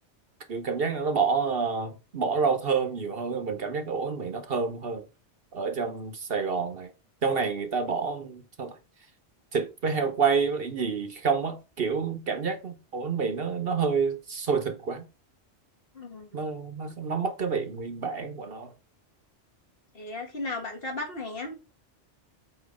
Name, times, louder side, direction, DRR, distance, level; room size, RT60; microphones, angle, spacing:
voice 1, 0.5-5.0 5.5-6.9 7.2-8.7 9.5-15.0 16.3-18.7, right 5 dB, 55° right, 1.1 m, -28 dB
voice 2, 15.9-16.4 19.9-21.5, left 2 dB, 50° left, 2.2 m, -35 dB
8.1 x 3.0 x 5.2 m
omnidirectional pair, 1.2 m